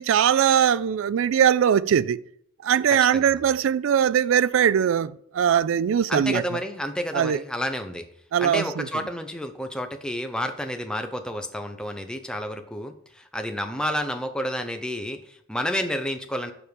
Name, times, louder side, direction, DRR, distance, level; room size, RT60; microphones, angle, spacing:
voice 1, 0.0-2.2 2.6-6.4 7.1-7.4 8.3-8.9, right 8 dB, 75° right, 0.3 m, -21 dB
voice 2, 2.9-3.5 6.1-8.0 8.4-16.5, equal, 5° left, 0.5 m, -30 dB
7.1 x 4.7 x 5.2 m
head